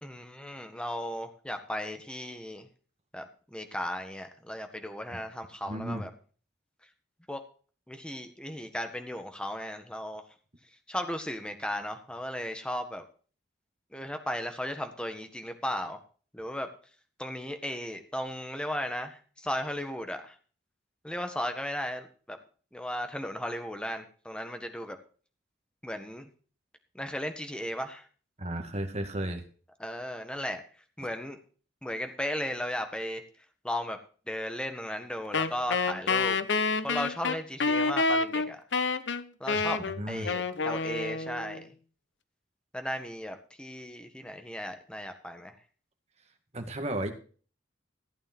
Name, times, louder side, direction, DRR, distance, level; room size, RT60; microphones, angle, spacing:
voice 1, 0.0-2.7 3.1-6.1 7.3-7.4 7.9-10.2 10.9-13.0 13.9-16.0 16.3-16.7 17.2-20.3 21.0-22.4 22.7-25.0 25.8-26.3 26.9-28.0 29.8-30.6 31.0-31.4 31.8-33.2 33.6-34.0 34.3-36.4 36.8-38.6 39.4-41.7 42.7-45.6, equal, 5° left, 6 dB, 1.5 m, -36 dB
voice 2, 5.7-6.1 28.4-29.4 39.5-39.6 40.0-40.3 46.5-47.1, right 1 dB, 35° right, 6 dB, 2.1 m, -34 dB
Wind instrument woodwind instrument, 35.3-41.6, left 4 dB, 75° left, 0.8 m, -28 dB
15.0 x 8.8 x 4.5 m, 0.40 s
head